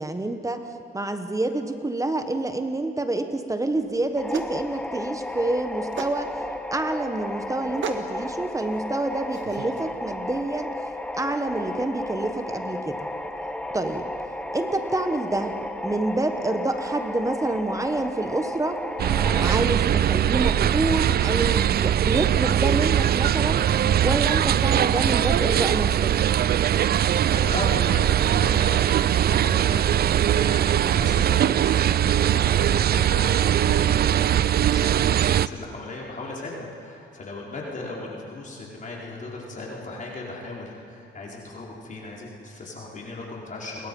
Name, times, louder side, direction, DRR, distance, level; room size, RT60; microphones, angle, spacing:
voice 1, 0.0-6.3 6.7-10.7 11.1-13.1 13.7-14.1 14.5-15.6 15.8-18.8 19.4-23.6 24.0-26.1, right 2 dB, 15° right, 7 dB, 1.4 m, -27 dB
sound 1, 3.7-9.8, right 7 dB, 70° right, 1.7 m, -40 dB
sound 2, 4.2-19.5, left 1 dB, 5° left, 1.2 m, -33 dB
sound 3, 19.0-35.5, right 10 dB, 50° right, 0.5 m, -21 dB
voice 2, 27.3-43.9, left 2 dB, 40° left, -3 dB, 4.6 m, -37 dB
29.0 x 22.0 x 5.5 m, 2.7 s
cardioid pair, 90°, 20 cm